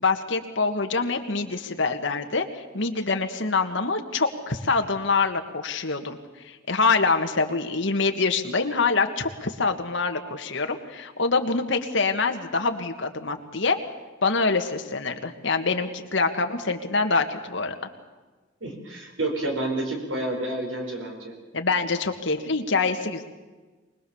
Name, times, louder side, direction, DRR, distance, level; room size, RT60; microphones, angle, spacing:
voice 1, 0.0-6.2 6.4-13.8 14.2-17.7 21.5-23.2, left 4 dB, 65° left, 5 dB, 1.8 m, -25 dB
voice 2, 18.6-21.3, right 2 dB, 80° right, 2 dB, 4.9 m, -29 dB
24.5 x 20.0 x 7.2 m, 1.3 s
head